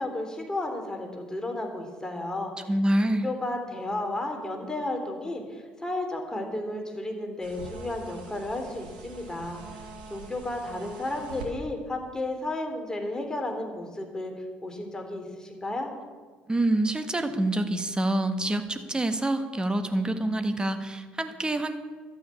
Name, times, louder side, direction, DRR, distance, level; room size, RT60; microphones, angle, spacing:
voice 1, 0.0-2.5 3.1-9.8 10.1-14.3 14.6-15.9, left 2 dB, 15° left, 3 dB, 3.6 m, -33 dB
voice 2, 2.7-3.3 16.5-21.8, right 1 dB, 20° right, 9 dB, 1.6 m, -26 dB
sound 1, 7.4-11.5, right 4 dB, 85° right, 2.5 m, -44 dB
12.5 x 8.8 x 8.4 m, 1.5 s
hypercardioid pair, 55°, 5 cm